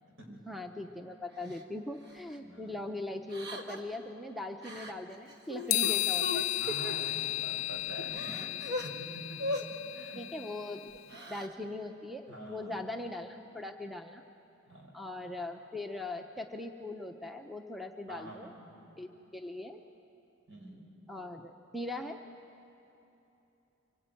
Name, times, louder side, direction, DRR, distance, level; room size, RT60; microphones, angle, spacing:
voice 1, 0.3-6.5 10.1-14.2 14.9-18.5 19.0-19.8 21.1-22.2, left 2 dB, ahead, 4 dB, 0.7 m, -40 dB
Crying sobbing, 1.5-1.6 2.1-2.3 3.3-3.9 4.6-4.9 5.3-7.0 7.6-7.7 8.0-8.9 9.4-9.6 10.9-11.5, left 1 dB, 50° right, 1.7 m, -38 dB
voice 2, 2.4-2.8 5.8-6.1 6.6-10.2 11.1-11.3 12.3-12.9 14.7-14.9 18.1-18.8 20.5-20.8, right 1 dB, 70° right, 0 dB, 5.5 m, -47 dB
sound 1, 5.7-11.0, left 18 dB, 65° left, 0.4 m, -34 dB
25.0 x 19.5 x 9.1 m, 2.9 s
head